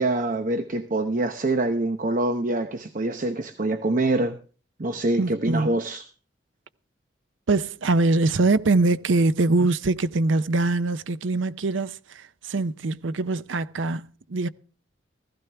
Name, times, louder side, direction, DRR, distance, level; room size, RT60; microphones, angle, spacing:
voice 1, 0.0-4.4 4.8-6.0, right 2 dB, 45° right, 0.8 m, -25 dB
voice 2, 5.2-5.8 7.5-14.5, right 3 dB, 85° right, 0.6 m, -23 dB
15.5 x 15.5 x 3.4 m
head